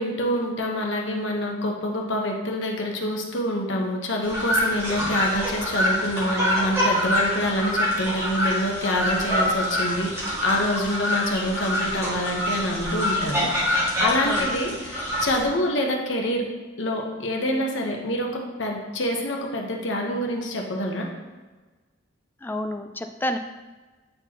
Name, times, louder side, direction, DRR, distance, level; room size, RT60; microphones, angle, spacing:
voice 1, 0.0-16.5 16.8-21.1, left 1 dB, 70° left, 1 dB, 1.0 m, -26 dB
sound 1, 4.2-15.4, equal, 15° right, 1.9 m, -25 dB
voice 2, 22.4-23.4, left 1 dB, 10° left, 6 dB, 0.4 m, -29 dB
8.8 x 4.4 x 2.9 m, 1.3 s
head